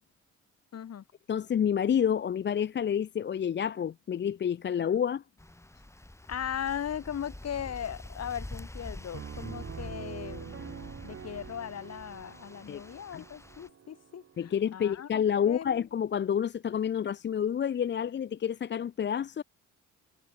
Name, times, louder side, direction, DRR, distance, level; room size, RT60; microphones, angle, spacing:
voice 1, 0.7-1.0 6.3-15.1 15.4-15.8, left 9 dB, 55° left, 3.2 m, -38 dB
voice 2, 1.3-5.2 12.7-12.8 13.1-13.2 14.4-19.4, left 8 dB, 35° left, 0.6 m, -29 dB
sound 1, 5.4-13.7, left 1 dB, 10° left, 5.2 m, -47 dB
Piano, 9.1-14.7, right 7 dB, 45° right, 3.0 m, -45 dB
cardioid pair, 90°, 30 cm